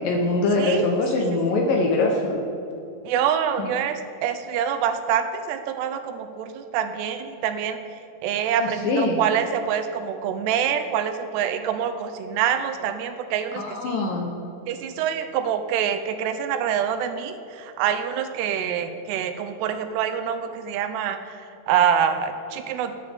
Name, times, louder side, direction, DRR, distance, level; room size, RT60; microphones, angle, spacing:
voice 1, 0.0-2.4 3.6-3.7 8.6-9.2 13.6-14.3, left 2 dB, 70° left, 1 dB, 2.3 m, -23 dB
voice 2, 0.6-0.9 1.1-1.3 3.0-7.8 8.2-14.1 14.7-22.9, right 8 dB, 85° right, 8 dB, 2.8 m, -26 dB
19.5 x 8.5 x 3.5 m, 2.8 s
omnidirectional pair, 4.8 m